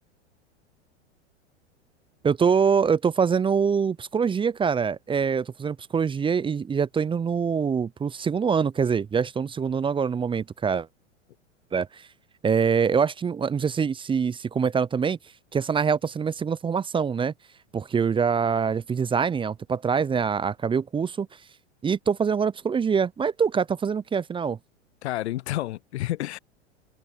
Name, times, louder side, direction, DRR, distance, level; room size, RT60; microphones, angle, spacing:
voice 1, 2.2-10.9 11.7-12.0 12.4-15.2 15.5-17.3 17.7-21.3 21.8-24.6, right 6 dB, 15° right, 0.7 m, -24 dB
voice 2, 25.0-26.4, left 15 dB, 65° left, 0.7 m, -30 dB
hypercardioid pair, 95°, 36 cm